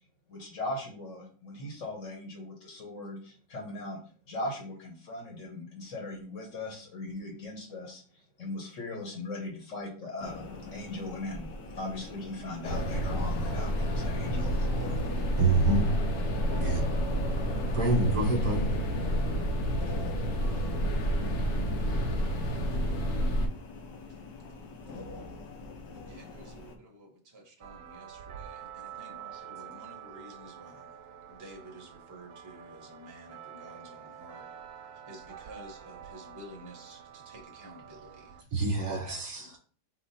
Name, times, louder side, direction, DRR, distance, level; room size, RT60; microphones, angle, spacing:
voice 1, 0.3-4.0 4.3-10.5 10.7-11.5 11.7-15.0, left 2 dB, 50° left, 0 dB, 1.4 m, -39 dB
sound 1, 10.2-26.8, left 2 dB, 90° left, 1.5 m, -44 dB
sound 2, 12.6-23.5, equal, 65° left, 1.3 m, -29 dB
voice 2, 15.4-15.9 16.6-16.9 17.7-18.6 38.5-39.5, right 3 dB, 40° right, -1 dB, 0.9 m, -26 dB
voice 3, 22.1-23.3 25.9-30.9 31.3-34.5 35.1-38.4 38.6-39.6, right 1 dB, 15° right, 1 dB, 0.6 m, -51 dB
sound 3, 27.6-38.4, right 9 dB, 75° right, 0.7 m, -47 dB
4.2 x 2.8 x 4.1 m, 0.42 s
omnidirectional pair, 1.8 m